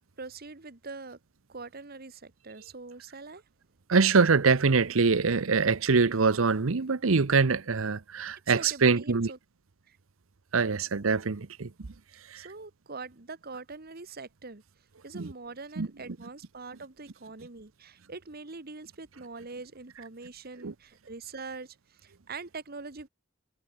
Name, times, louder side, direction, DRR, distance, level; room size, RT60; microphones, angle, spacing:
voice 1, 0.2-1.2 1.5-3.4 8.5-9.4 9.9-10.0 12.3-14.6 15.0-23.1, right 3 dB, 50° right, 1.5 m, -43 dB
voice 2, 3.9-9.3 10.5-11.7 15.1-15.3 15.8-15.9 20.6-20.7, right 4 dB, 85° right, 0.8 m, -24 dB
head